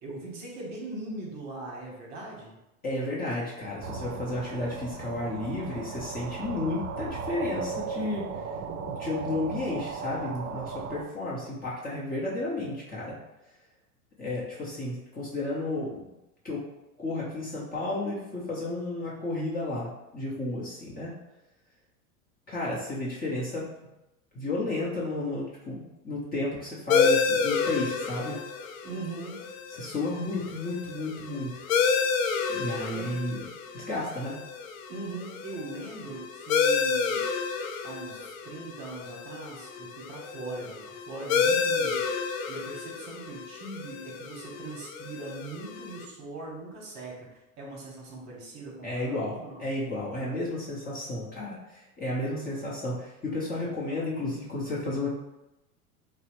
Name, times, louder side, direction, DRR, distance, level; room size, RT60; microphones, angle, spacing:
voice 1, 0.0-2.6 28.8-29.4 32.9-33.2 34.9-37.2 37.8-40.8 41.1-42.0 42.5-47.3 47.6-49.7, right 3 dB, 40° right, -2 dB, 1.0 m, -40 dB
voice 2, 2.8-8.2 8.8-13.2 14.2-16.1 16.4-16.6 17.0-21.1 22.5-23.6 24.3-28.4 29.7-31.5 32.5-33.4 33.7-34.4 48.8-55.1, left 2 dB, 20° left, -6 dB, 0.7 m, -32 dB
sound 1, 3.8-11.0, right 5 dB, 65° right, 0.5 m, -36 dB
sound 2, 26.9-46.0, left 5 dB, 65° left, 0.5 m, -30 dB
2.9 x 2.0 x 3.0 m, 0.94 s
hypercardioid pair, 100°, 44 cm